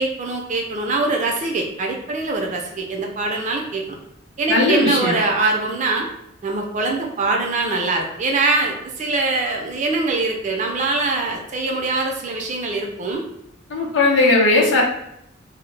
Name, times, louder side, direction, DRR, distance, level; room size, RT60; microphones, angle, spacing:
voice 1, 0.0-3.8 4.4-6.1 6.4-13.2, right 3 dB, 35° right, 1 dB, 0.4 m, -23 dB
voice 2, 4.5-5.2 13.7-14.8, left 2 dB, 65° left, -1 dB, 0.6 m, -17 dB
2.0 x 2.0 x 3.2 m, 0.77 s
head